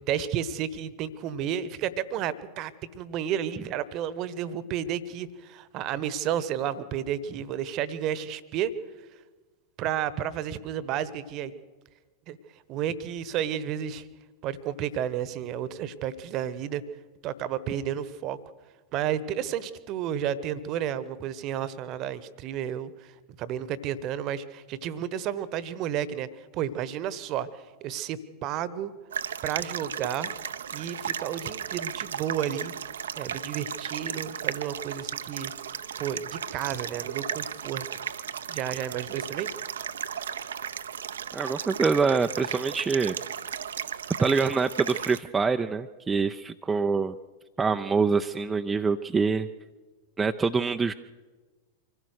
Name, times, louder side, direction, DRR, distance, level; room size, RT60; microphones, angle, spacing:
voice 1, 0.0-8.7 9.8-11.5 12.3-12.4 12.7-14.0 14.4-16.8 17.2-18.4 18.9-23.1 23.4-28.9 29.4-30.3 30.7-32.7 33.2-35.5 36.0-37.9 38.5-39.5, right 9 dB, 40° right, 16 dB, 1.1 m, -32 dB
sound 1, 29.1-45.2, right 8 dB, 65° right, 0.7 m, -35 dB
voice 2, 41.3-43.2 44.2-47.2 47.6-49.5 50.2-50.9, right 4 dB, 15° right, 6 dB, 0.5 m, -25 dB
25.0 x 16.0 x 6.5 m, 1.3 s
figure-of-eight pair, 90°, 0 cm